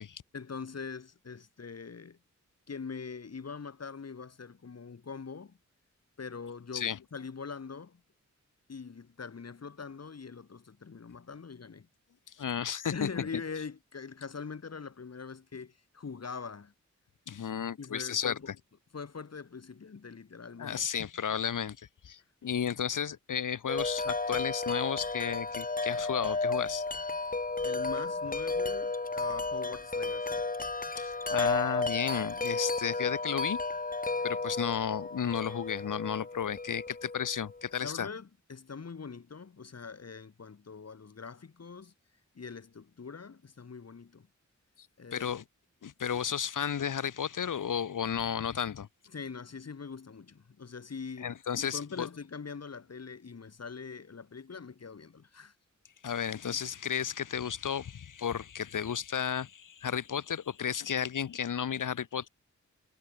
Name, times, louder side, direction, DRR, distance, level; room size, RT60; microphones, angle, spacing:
voice 1, 0.3-2.2 2.7-5.6 6.2-8.0 8.7-11.9 12.9-16.7 17.8-18.5 18.9-20.9 27.6-30.4 37.8-41.9 42.3-44.3 45.0-45.3 49.1-51.3 51.7-55.5, left 5 dB, 55° left, 4.3 m, -43 dB
voice 2, 12.4-13.3 17.3-18.5 20.6-26.8 31.0-33.6 34.2-38.1 45.1-45.4 45.8-48.9 51.2-52.1 56.0-62.3, left 8 dB, 85° left, 1.5 m, -33 dB
Wind chime, 23.7-37.6, left 3 dB, 25° left, 2.5 m, -33 dB
wide cardioid pair, 125°, 30 cm